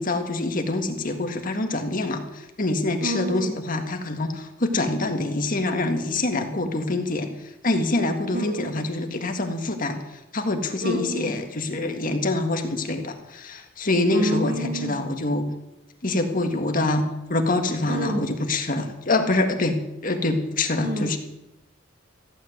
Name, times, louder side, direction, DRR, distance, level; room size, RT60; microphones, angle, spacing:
voice 1, 0.0-7.3 7.6-10.0 10.3-15.5 16.0-17.0 17.3-21.2, left 2 dB, 45° left, 5 dB, 1.8 m, -25 dB
voice 2, 3.0-3.5 8.3-8.8 10.8-11.4 14.1-15.0 17.9-18.2 20.8-21.2, right 1 dB, 55° right, 4 dB, 2.4 m, -28 dB
15.0 x 8.8 x 9.4 m, 0.92 s
head